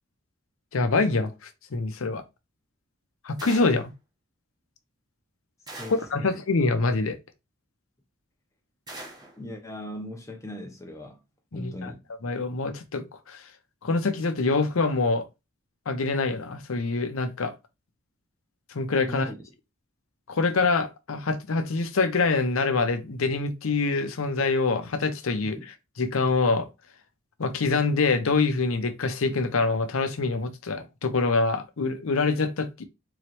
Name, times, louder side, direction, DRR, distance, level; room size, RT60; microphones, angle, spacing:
voice 1, 0.7-1.3 1.7-2.2 3.2-3.9 6.1-7.2 11.5-11.9 12.2-13.4 13.8-15.2 15.9-17.5 18.7-19.3 20.3-25.6 26.0-26.7 27.4-32.8, left 3 dB, 75° left, 0.6 m, -25 dB
sound 1, 3.4-3.9 5.7-6.2 8.9-9.4, right 2 dB, 20° right, 0.9 m, -42 dB
voice 2, 5.8-6.4 9.4-11.2 11.5-12.0 19.1-19.4 25.5-25.6, left 1 dB, 15° left, 0.7 m, -38 dB
3.9 x 3.1 x 3.0 m
head